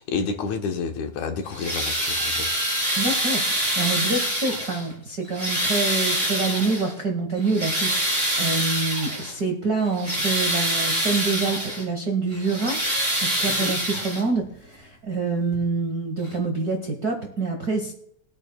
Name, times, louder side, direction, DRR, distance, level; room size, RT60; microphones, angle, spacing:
voice 1, 0.0-2.5 13.5-13.7, left 5 dB, 75° left, 5 dB, 2.3 m, -29 dB
sound 1, 1.5-4.9 5.3-6.9 7.4-9.3 9.8-11.8 12.3-14.4 15.5-15.6 16.2-16.3, right 1 dB, 20° right, 5.5 m, -25 dB
voice 2, 3.0-17.9, right 3 dB, 55° right, 2 dB, 1.0 m, -26 dB
21.5 x 8.9 x 2.2 m, 0.68 s
omnidirectional pair, 3.5 m